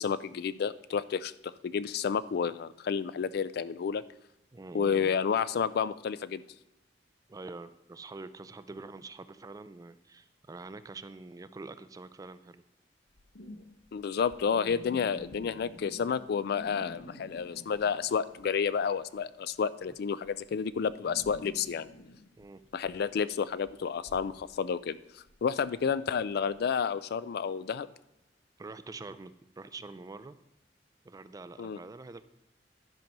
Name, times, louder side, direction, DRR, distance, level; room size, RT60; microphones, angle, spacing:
voice 1, 0.0-4.0 4.7-6.4 13.9-21.9 22.7-27.9 31.6-31.8, left 6 dB, 60° left, 16 dB, 0.3 m, -30 dB
voice 2, 4.5-5.2 7.3-12.6 22.4-22.6 28.6-30.4 31.0-32.2, right 3 dB, 20° right, 13 dB, 0.3 m, -45 dB
sound 1, 13.1-18.7 18.9-26.8, left 1 dB, 80° left, 0.9 m, -50 dB
10.5 x 5.9 x 5.3 m, 0.90 s
head